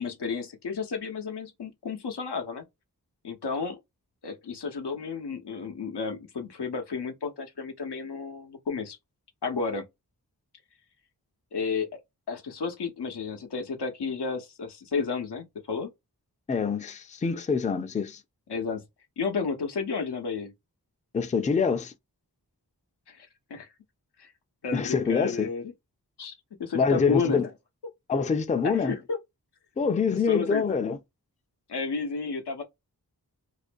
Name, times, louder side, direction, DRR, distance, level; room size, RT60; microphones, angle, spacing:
voice 1, 0.0-2.6 3.2-3.8 4.2-9.0 9.4-9.9 11.5-12.0 12.3-15.9 18.5-18.8 19.2-20.5 23.1-23.7 24.2-24.3 24.6-25.7 26.2-27.5 28.6-29.2 30.3-30.8 31.7-32.6, left 5 dB, 90° left, 0.7 m, -32 dB
voice 2, 16.5-18.2 21.1-21.9 24.7-25.5 26.7-27.5 28.1-28.9 29.8-31.0, left 5 dB, 20° left, 0.3 m, -25 dB
2.4 x 2.2 x 2.4 m
wide cardioid pair, 40°, 40 cm